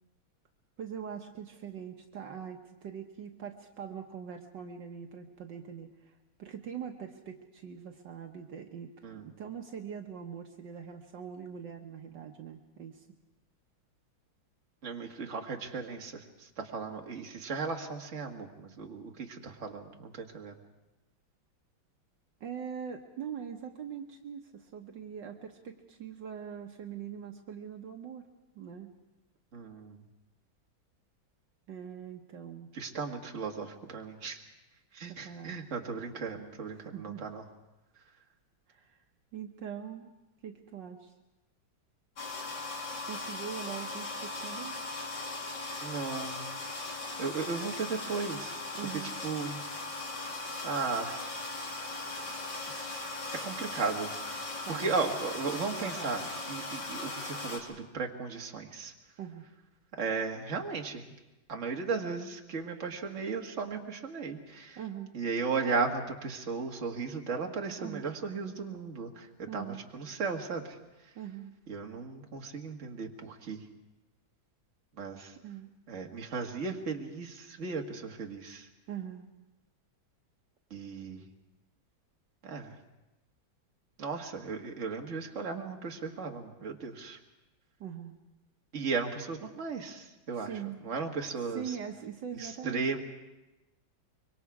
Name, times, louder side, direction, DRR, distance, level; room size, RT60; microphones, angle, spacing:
voice 1, 0.8-13.1 22.4-28.3 28.6-28.9 31.7-32.7 35.1-35.6 36.8-37.3 38.7-39.0 39.3-40.1 40.4-41.1 43.1-44.8 48.7-49.2 54.6-55.1 55.8-56.1 59.2-59.5 64.8-65.1 67.8-68.1 69.5-69.8 71.2-71.5 75.4-75.7 78.9-79.3 87.8-88.2 90.4-90.8 91.5-92.8, right 8 dB, 65° right, 3 dB, 1.7 m, -42 dB
voice 2, 14.8-20.6 29.5-30.0 32.7-34.4 34.9-37.4 45.8-46.5 47.2-48.6 48.9-49.6 50.6-51.2 52.1-52.3 52.7-58.9 60.0-61.0 61.5-64.8 65.1-70.8 71.7-73.6 75.0-75.3 75.9-78.7 80.7-81.2 82.4-82.8 84.0-87.2 88.7-91.8 92.4-93.0, right 4 dB, 40° right, 2 dB, 1.9 m, -36 dB
sound 1, 42.2-57.6, left 2 dB, 60° left, 3.2 m, -38 dB
25.0 x 23.5 x 4.8 m, 1.0 s
omnidirectional pair, 2.1 m